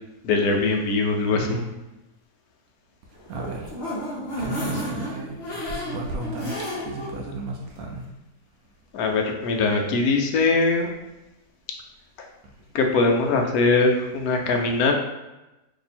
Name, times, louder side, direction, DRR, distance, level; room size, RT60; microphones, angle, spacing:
voice 1, 0.2-1.6 5.9-6.1 8.9-10.9 12.7-14.9, left 3 dB, 70° left, 2 dB, 1.0 m, -21 dB
voice 2, 1.3-1.7 3.3-3.7 4.4-6.5 6.9-8.0, right 2 dB, 70° right, 1 dB, 0.9 m, -34 dB
sound 1, 3.2-7.1 7.5-7.6 8.0-8.1, equal, 45° left, 0.9 m, -32 dB
2.9 x 2.7 x 4.1 m, 0.99 s
omnidirectional pair, 1.8 m